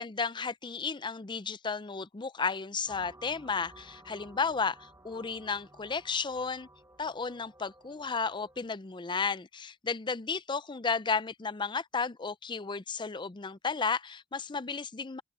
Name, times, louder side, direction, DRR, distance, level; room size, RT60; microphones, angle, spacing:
voice 1, 0.0-6.7 7.0-15.2, left 5 dB, 25° left, 0.5 m, -33 dB
sound 1, 2.9-8.7, right 1 dB, 15° right, 1.5 m, -56 dB
open air
head